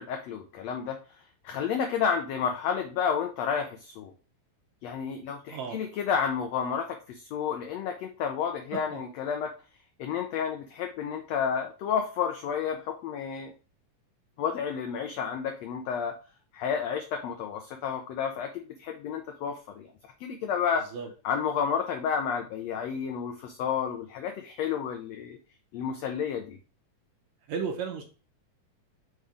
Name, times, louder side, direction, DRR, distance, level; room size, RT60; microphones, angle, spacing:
voice 1, 0.0-4.1 4.8-9.5 10.0-13.5 14.4-16.2 16.5-19.9 20.2-20.8 21.2-25.4 25.7-26.6, left 7 dB, 90° left, 5 dB, 1.4 m, -31 dB
voice 2, 5.5-5.8 8.7-9.0 20.9-21.1 27.5-28.0, right 6 dB, 70° right, 3 dB, 1.9 m, -34 dB
5.5 x 3.4 x 5.0 m, 0.35 s
omnidirectional pair, 3.8 m